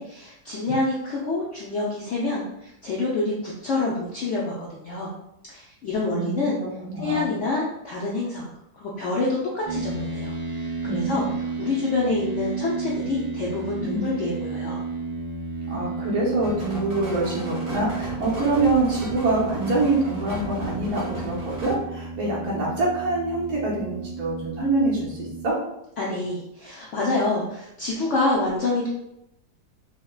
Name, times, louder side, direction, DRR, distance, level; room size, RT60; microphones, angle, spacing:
voice 1, 0.0-5.1 5.5-6.6 7.0-8.5 8.7-10.3 10.6-14.8 26.0-28.9, left 2 dB, 70° left, -4 dB, 0.7 m, -27 dB
voice 2, 5.9-7.4 10.8-11.3 13.8-14.1 15.7-25.6, right 2 dB, 65° right, -5 dB, 1.5 m, -25 dB
sound 1, 9.6-25.5, right 4 dB, 20° left, 0.5 m, -33 dB
sound 2, 16.4-21.8, right 1 dB, 30° right, 0.5 m, -37 dB
4.9 x 2.2 x 2.3 m, 0.82 s
omnidirectional pair, 1.9 m